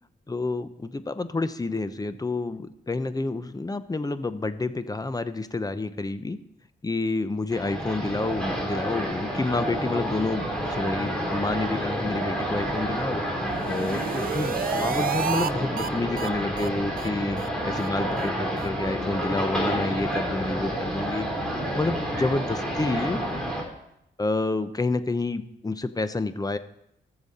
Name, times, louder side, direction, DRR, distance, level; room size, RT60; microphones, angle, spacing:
voice 1, 0.3-6.4 6.8-13.2 13.7-17.4 17.6-21.3 21.8-23.2 24.2-26.6, left 3 dB, 20° left, 12 dB, 0.7 m, -29 dB
sound 1, 7.5-23.6, equal, 5° left, 3.5 m, -29 dB
sound 2, 13.5-15.5 15.8-15.9 16.2-16.3 16.6-16.7 17.0-17.1 17.4-17.5 17.8-17.9 18.2-18.3 18.6-18.7, right 8 dB, 50° right, 0.4 m, -31 dB
17.5 x 7.0 x 4.2 m, 0.81 s
cardioid pair, 90°, 19 cm